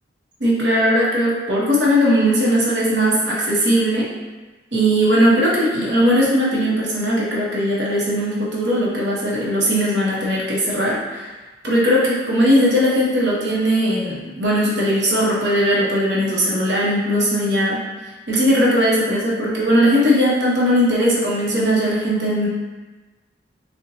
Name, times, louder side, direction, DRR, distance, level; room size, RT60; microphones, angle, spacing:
voice 1, 0.4-4.1 4.7-11.3 11.6-17.8 18.3-22.5, equal, 65° right, -6 dB, 0.9 m, -18 dB
4.3 x 2.1 x 2.7 m, 1.2 s
head